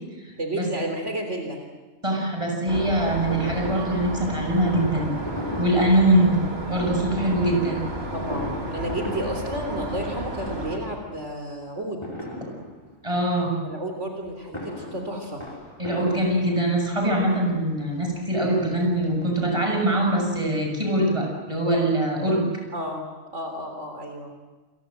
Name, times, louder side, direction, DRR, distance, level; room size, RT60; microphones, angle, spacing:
voice 1, 0.4-1.6 7.2-7.5 8.1-12.0 13.6-15.4 22.7-24.3, right 1 dB, 75° right, 3 dB, 3.9 m, -32 dB
voice 2, 2.0-5.1 5.6-6.3 6.7-7.8 13.0-13.6 15.8-22.5, right 1 dB, 25° right, 1 dB, 7.3 m, -23 dB
sound 1, 2.7-10.8, right 1 dB, 55° right, 3.7 m, -33 dB
Fireworks, 3.3-6.5 7.3-10.2 10.4-11.1 12.0-13.1 14.3-16.9 17.7-17.8 18.1-18.2 18.5-19.8 20.1-20.2 20.3-20.4, left 1 dB, 20° left, 5.7 m, -37 dB
28.5 x 23.5 x 7.8 m, 1.2 s
omnidirectional pair, 1.2 m